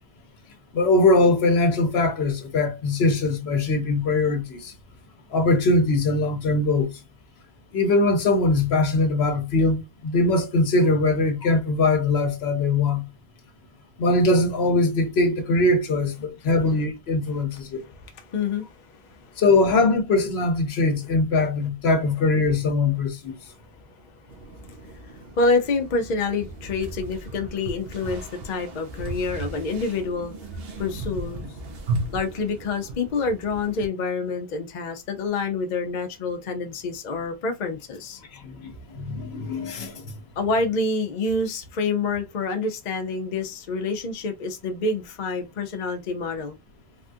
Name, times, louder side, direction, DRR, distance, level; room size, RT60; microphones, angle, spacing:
voice 1, 0.7-4.7 5.3-7.0 7.7-13.0 14.0-17.8 19.4-23.3 38.3-40.1, left 2 dB, 70° left, 1.0 m, -21 dB
voice 2, 17.8-18.7 25.1-30.3 30.8-31.4 32.1-38.6 40.4-46.6, left 3 dB, 50° left, 0.7 m, -27 dB
sound 1, 24.3-33.9, right 2 dB, 65° right, 0.9 m, -36 dB
3.5 x 2.3 x 2.5 m
omnidirectional pair, 1.1 m